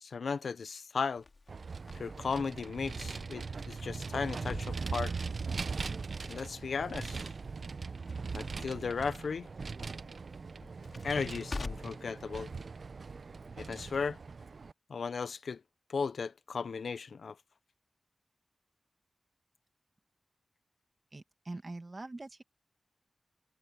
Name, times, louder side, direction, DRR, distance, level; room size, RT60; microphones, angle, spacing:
voice 1, 0.0-1.2 1.9-5.1 6.2-7.3 8.3-9.5 11.0-12.5 13.6-14.2 14.9-15.6 15.9-17.4, left 5 dB, 90° left, 0.5 m, -36 dB
Crackle, 1.2-12.1, left 3 dB, 55° left, 2.5 m, -49 dB
Vehicle, 1.5-14.7, right 4 dB, 70° right, 0.5 m, -40 dB
voice 2, 21.1-22.4, right 2 dB, 40° right, 2.0 m, -43 dB
wide cardioid pair, 70°, 0 cm